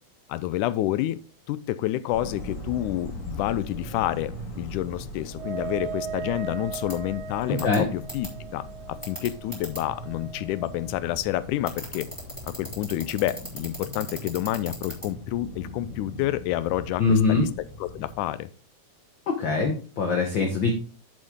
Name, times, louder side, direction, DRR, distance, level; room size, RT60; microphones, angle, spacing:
voice 1, 0.3-1.2 1.5-12.1 12.5-17.5 17.8-18.5, left 14 dB, 85° left, 16 dB, 2.1 m, -29 dB
sound 1, 2.1-18.2, left 1 dB, 35° left, 3.2 m, -40 dB
Wind instrument woodwind instrument, 5.3-11.0, right 7 dB, 80° right, 1.9 m, -38 dB
sound 2, 6.7-6.9 7.6-7.8 8.1-8.3 9.0-9.8 11.7-15.1, right 1 dB, 5° left, 3.6 m, -36 dB
voice 2, 17.0-17.5 19.3-20.7, left 4 dB, 60° left, 3 dB, 1.3 m, -22 dB
7.7 x 7.5 x 3.6 m, 0.37 s
omnidirectional pair, 3.5 m